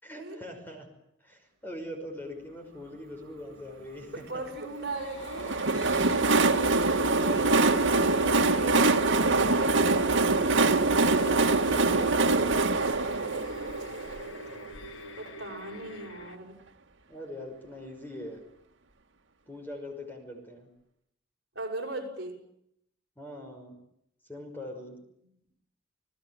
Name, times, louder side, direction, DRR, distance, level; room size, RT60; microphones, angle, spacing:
voice 1, 0.0-0.9 1.2-4.4 9.5-12.3 12.8-13.0 17.1-18.4 19.5-20.7 23.2-23.8 24.3-25.0, left 1 dB, 10° left, 4 dB, 5.8 m, -42 dB
voice 2, 4.1-5.5 15.2-16.6 21.6-22.3, right 2 dB, 55° right, 2 dB, 7.1 m, -37 dB
sound 1, 4.6-16.4, equal, 75° left, 1.8 m, -43 dB
Train, 5.2-14.8, right 3 dB, 75° right, 2.0 m, -24 dB
30.0 x 19.5 x 9.2 m, 0.76 s
head